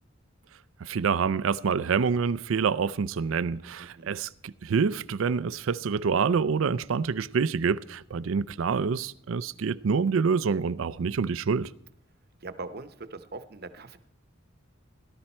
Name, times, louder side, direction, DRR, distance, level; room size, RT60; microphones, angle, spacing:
voice 1, 0.8-11.7, right 5 dB, 70° right, 0.4 m, -27 dB
voice 2, 3.8-4.1 8.1-8.3 12.4-14.0, right 3 dB, 50° right, 0.9 m, -41 dB
18.0 x 12.0 x 4.3 m
head